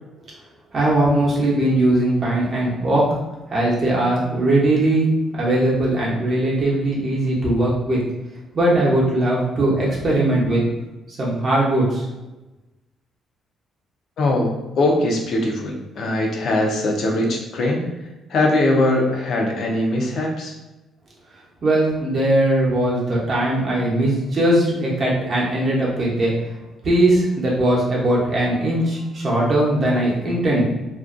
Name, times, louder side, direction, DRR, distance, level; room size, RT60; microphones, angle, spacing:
voice 1, 0.7-3.1 3.5-8.0 8.5-10.6 11.2-12.1 21.6-26.3 26.8-30.6, right 1 dB, 35° right, -5 dB, 0.7 m, -19 dB
voice 2, 14.2-17.8 18.3-20.5, left 1 dB, 55° left, 0 dB, 0.5 m, -21 dB
2.5 x 2.2 x 2.5 m, 1.0 s
cardioid pair, 150°, 0 cm